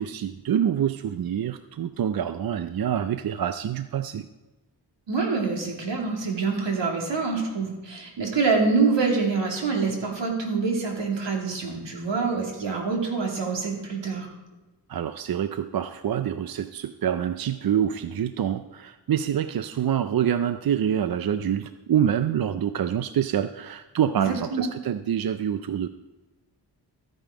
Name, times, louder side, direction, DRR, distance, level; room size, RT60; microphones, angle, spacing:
voice 1, 0.0-4.3 14.9-25.9, right 9 dB, 55° right, 10 dB, 0.5 m, -26 dB
voice 2, 5.1-14.3 24.1-24.6, right 4 dB, 85° right, 0 dB, 2.7 m, -26 dB
13.5 x 9.1 x 4.9 m, 1.1 s
wide cardioid pair, 170°, 43 cm